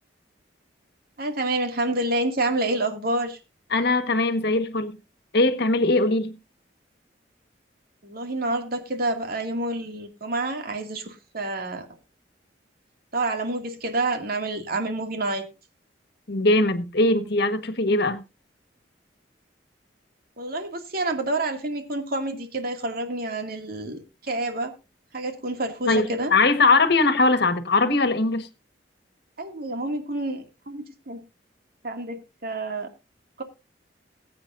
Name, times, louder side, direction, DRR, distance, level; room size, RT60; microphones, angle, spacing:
voice 1, 1.2-3.4 8.0-11.9 13.1-15.5 20.4-24.7 25.1-26.3 29.4-31.2 31.8-32.9 33.4-33.5, right 2 dB, 55° right, 2.4 m, -28 dB
voice 2, 3.7-5.0 5.3-6.4 16.3-18.2 25.9-28.5, left 2 dB, 65° left, 1.5 m, -21 dB
21.0 x 8.8 x 2.6 m
head